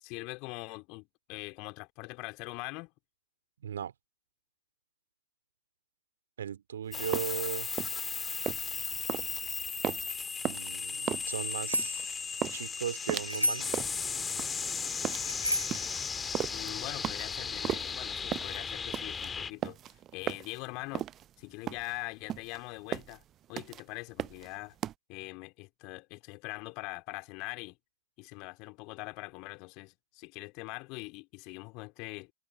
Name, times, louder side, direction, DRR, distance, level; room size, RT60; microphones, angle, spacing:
voice 1, 0.0-2.9 16.5-21.1 21.4-23.2 23.5-24.7 25.1-27.8 28.2-32.3, left 27 dB, 45° left, 3.3 m, -42 dB
voice 2, 3.6-3.9 6.4-7.7 10.5-12.1 12.5-13.7, right 9 dB, 65° right, 2.8 m, -37 dB
sound 1, 6.9-19.5, left 6 dB, 15° left, 2.2 m, -36 dB
sound 2, 6.9-24.9, right 11 dB, 30° right, 0.6 m, -37 dB
Bicycle bell, 11.4-12.1 13.3-13.8 15.1-15.9, equal, 90° left, 3.0 m, -32 dB
figure-of-eight pair, 90°, 0 cm